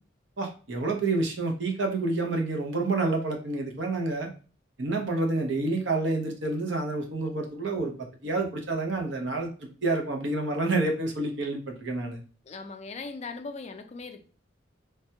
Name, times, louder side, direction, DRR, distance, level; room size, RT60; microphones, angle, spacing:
voice 1, 0.4-4.3 4.8-9.5 9.8-12.2, right 2 dB, 70° right, 2 dB, 0.7 m, -28 dB
voice 2, 12.5-14.2, left 4 dB, 35° left, 7 dB, 0.3 m, -39 dB
3.3 x 2.2 x 2.8 m, 0.38 s
head